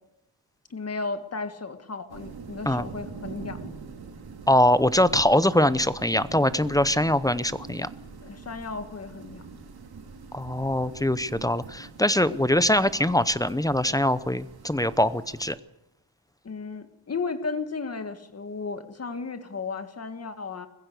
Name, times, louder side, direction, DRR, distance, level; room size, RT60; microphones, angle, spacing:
voice 1, 0.7-3.7 8.2-9.4 16.4-20.7, left 4 dB, 35° left, 9 dB, 2.0 m, -34 dB
sound 1, 2.1-15.6, right 5 dB, 60° right, 3.2 m, -44 dB
voice 2, 4.5-7.9 10.3-15.6, left 1 dB, 10° left, 15 dB, 0.6 m, -23 dB
21.0 x 15.0 x 8.2 m, 0.88 s
wide cardioid pair, 125°, 42 cm